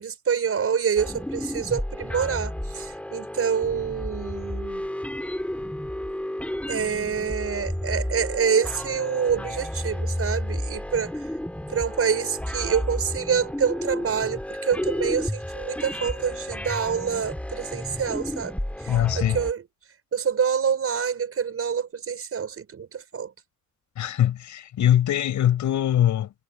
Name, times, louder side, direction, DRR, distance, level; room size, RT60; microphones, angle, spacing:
voice 1, 0.0-4.9 6.7-11.2 11.7-18.5 18.8-19.6 20.1-23.3, right 7 dB, 50° right, 6.5 m, -27 dB
sound 1, 1.0-19.5, left 1 dB, 5° left, 4.1 m, -32 dB
voice 2, 18.9-19.4 24.0-26.3, left 11 dB, 75° left, 7.0 m, -22 dB
cardioid pair, 90°, 30 cm